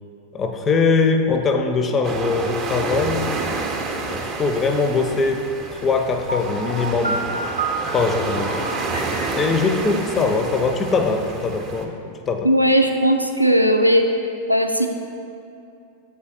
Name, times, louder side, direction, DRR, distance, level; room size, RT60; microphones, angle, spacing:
voice 1, 0.3-3.3 3.9-7.2 7.9-8.7 9.3-12.0 12.3-12.5, left 4 dB, 25° left, 6 dB, 0.5 m, -21 dB
sound 1, 2.0-11.8, right 3 dB, 30° right, 0.7 m, -29 dB
Piano, 6.3-11.1, right 2 dB, 80° right, 0.5 m, -30 dB
voice 2, 12.4-14.1 14.5-14.9, equal, 90° left, 5 dB, 0.4 m, -17 dB
7.2 x 3.9 x 4.3 m, 2.7 s
figure-of-eight pair, 90°, 0 cm